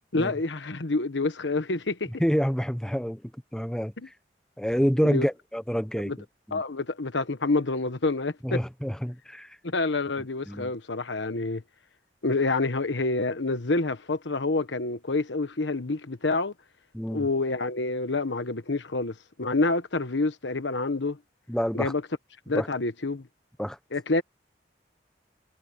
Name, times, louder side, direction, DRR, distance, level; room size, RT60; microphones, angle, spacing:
voice 1, 0.1-2.1 4.0-4.1 5.0-5.3 6.0-6.2 6.5-8.6 9.6-11.6 12.2-16.5 17.1-21.2 21.7-22.0 22.5-23.3 23.9-24.2, left 3 dB, 90° left, 1.3 m, -27 dB
voice 2, 2.2-3.9 4.6-6.1 6.5-6.6 8.4-9.5 10.5-10.7 16.9-17.3 21.5-21.9 22.5-22.7 23.6-23.8, equal, 5° left, 1.1 m, -27 dB
head